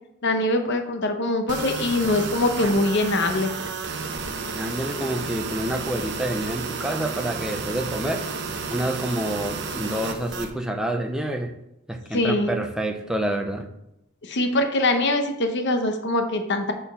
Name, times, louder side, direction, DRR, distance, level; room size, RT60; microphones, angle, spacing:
voice 1, 0.2-3.5 12.1-12.5 14.2-16.7, left 2 dB, 55° left, 6 dB, 0.9 m, -23 dB
sound 1, 1.5-10.5, right 4 dB, 55° right, 0.8 m, -32 dB
voice 2, 4.5-8.3 8.7-11.5 11.9-13.7, right 1 dB, 5° right, 4 dB, 0.6 m, -28 dB
7.1 x 4.3 x 5.6 m, 0.81 s
head